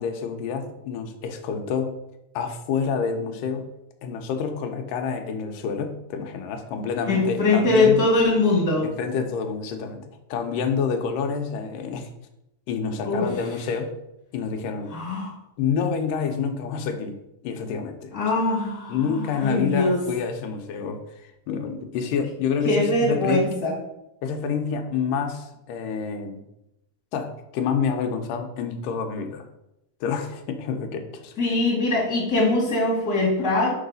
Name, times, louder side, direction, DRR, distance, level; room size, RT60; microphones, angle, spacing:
voice 1, 0.0-1.9 2.4-3.7 4.0-8.0 8.8-12.1 12.7-13.9 14.3-14.9 15.6-17.2 17.4-18.5 18.9-21.0 21.5-23.5 24.2-26.4 27.1-29.5 30.0-31.3, left 6 dB, 90° left, 5 dB, 2.3 m, -28 dB
voice 2, 7.1-8.9 13.0-13.3 14.9-15.3 18.1-20.0 22.6-23.7 31.4-33.7, left 2 dB, 10° left, -4 dB, 1.4 m, -22 dB
4.7 x 4.7 x 5.2 m, 0.86 s
omnidirectional pair, 3.8 m